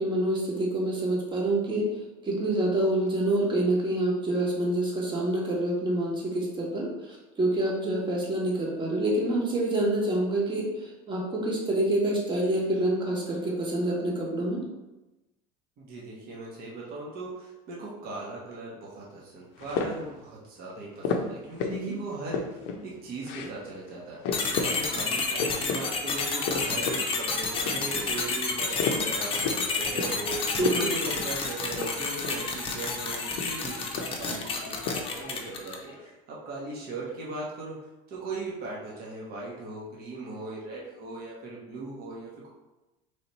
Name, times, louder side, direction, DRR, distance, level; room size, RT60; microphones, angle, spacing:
voice 1, 0.0-1.9 2.2-10.7 11.1-14.6 21.6-22.0 30.6-30.7, right 1 dB, 25° right, -3 dB, 1.2 m, -27 dB
voice 2, 15.8-24.2 24.6-37.8 38.1-42.5, right 2 dB, 50° right, -5 dB, 1.1 m, -38 dB
sound 1, 19.6-20.1 21.0-21.8 22.1-22.8 23.2-23.6 23.9-24.0 24.2-24.8 25.1-25.8 26.2-27.0 27.4-28.1 28.5-29.6 30.0-30.2 30.6-30.9 31.2-31.3 31.7-32.5 33.1-34.3 34.6-35.0, left 5 dB, 65° left, 0.5 m, -32 dB
sound 2, 24.3-35.9, left 4 dB, 25° left, 0.7 m, -30 dB
3.3 x 2.8 x 4.1 m, 1.0 s
supercardioid pair, 110°, 20 cm